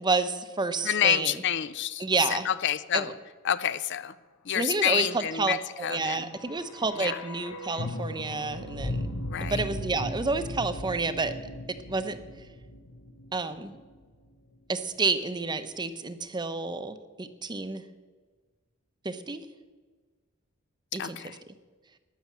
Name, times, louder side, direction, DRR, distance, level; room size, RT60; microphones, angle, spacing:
voice 1, 0.0-1.4 2.0-2.5 2.9-3.1 4.5-9.1 9.4-11.3 11.7-12.2 13.3-13.8 14.7-17.8 19.0-19.4 20.9-21.2, right 3 dB, 20° right, 11 dB, 0.8 m, -30 dB
voice 2, 0.8-3.1 3.4-4.1 4.4-6.3 7.0-7.2 9.3-9.6 21.0-21.4, left 10 dB, 55° left, 15 dB, 0.5 m, -28 dB
sound 1, 6.2-14.2 14.5-14.6, left 1 dB, 80° left, 1.3 m, -37 dB
13.0 x 10.0 x 7.3 m, 1.4 s
head